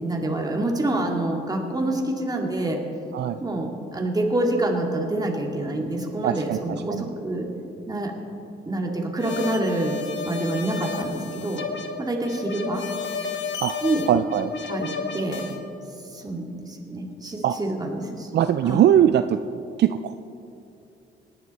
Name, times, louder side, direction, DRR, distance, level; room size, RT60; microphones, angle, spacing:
voice 1, 0.0-2.8 3.4-7.5 7.9-8.1 8.7-10.0 10.2-11.6 12.0-12.8 13.8-14.0 14.7-15.5 16.1-18.3 18.6-18.9, right 1 dB, 20° right, 1 dB, 2.2 m, -27 dB
voice 2, 6.2-6.6 6.9-7.1 13.6-13.7 14.1-14.5 17.4-17.6 18.3-19.4 19.8-20.1, right 10 dB, 60° right, 10 dB, 0.4 m, -20 dB
sound 1, 9.2-15.6, left 5 dB, 65° left, 1.4 m, -32 dB
19.0 x 11.0 x 4.2 m, 2.7 s
cardioid pair, 90°, 20 cm